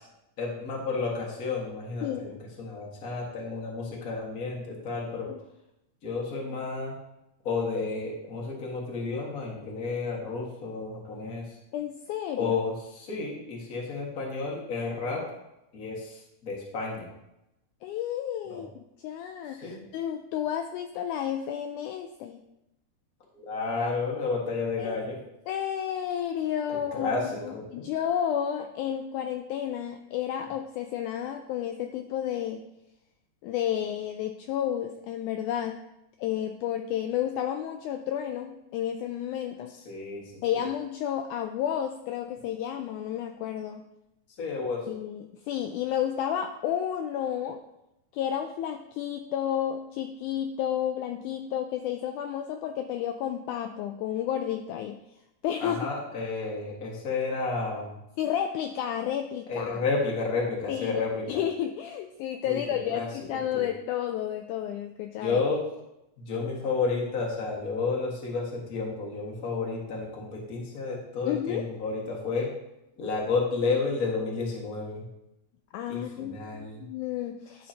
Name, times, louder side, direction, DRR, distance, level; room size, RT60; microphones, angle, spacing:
voice 1, 0.4-5.3 6.0-6.9 7.4-11.6 12.4-15.2 15.7-17.1 18.5-18.6 19.6-19.8 23.3-25.2 26.9-27.8 39.8-40.6 44.4-44.8 55.6-57.9 59.5-61.4 62.4-62.6 62.9-63.1 63.3-63.6 65.2-65.6 66.2-72.5 73.0-75.0 75.9-76.8, left 4 dB, 35° left, -3 dB, 1.5 m, -31 dB
voice 2, 2.0-2.3 5.3-5.4 11.7-12.6 17.8-18.7 19.0-22.4 24.8-25.0 25.5-27.1 27.4-32.6 33.4-35.8 36.2-39.7 40.4-43.8 44.9-47.6 48.1-55.0 55.4-55.9 58.2-59.8 60.7-61.0 61.3-65.4 71.3-71.7 75.7-77.7, left 10 dB, 80° left, 5 dB, 1.8 m, -31 dB
11.0 x 6.3 x 2.8 m, 0.88 s
omnidirectional pair, 3.8 m